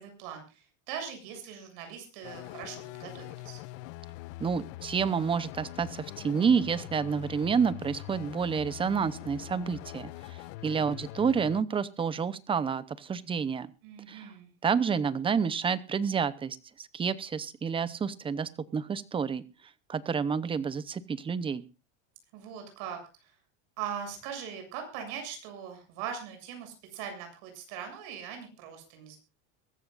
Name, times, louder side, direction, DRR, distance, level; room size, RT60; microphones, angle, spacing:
voice 1, 0.0-3.6 13.8-14.5 22.3-23.3 23.8-29.2, right 8 dB, 65° right, 5 dB, 7.4 m, -41 dB
sound 1, 2.2-11.6, left 18 dB, 65° left, 0.8 m, -43 dB
voice 2, 4.4-13.7 14.1-14.3 14.6-19.4 19.9-21.6, right 6 dB, 15° right, 16 dB, 0.7 m, -29 dB
23.0 x 13.5 x 2.5 m, 0.30 s
supercardioid pair, 150°, 37 cm